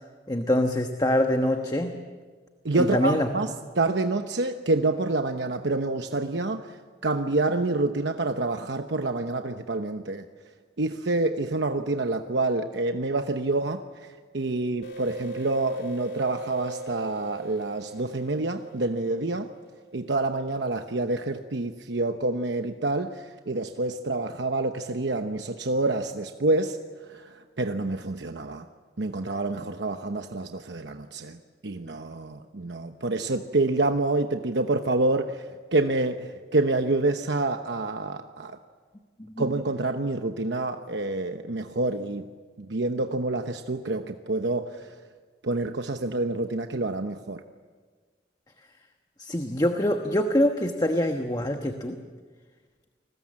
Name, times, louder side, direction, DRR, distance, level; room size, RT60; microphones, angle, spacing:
voice 1, 0.3-1.9 2.7-3.3 39.2-39.4 49.2-52.0, left 1 dB, 20° left, 5 dB, 1.2 m, -24 dB
voice 2, 2.6-6.8 7.0-10.3 10.8-13.8 14.3-19.5 19.9-26.8 27.1-28.7 29.0-38.6 39.4-42.3 42.6-44.9 45.4-47.4, right 2 dB, 80° right, 6 dB, 1.0 m, -27 dB
sound 1, 14.8-20.1, right 2 dB, 75° left, 3.4 m, -39 dB
30.0 x 21.0 x 7.6 m, 1.5 s
head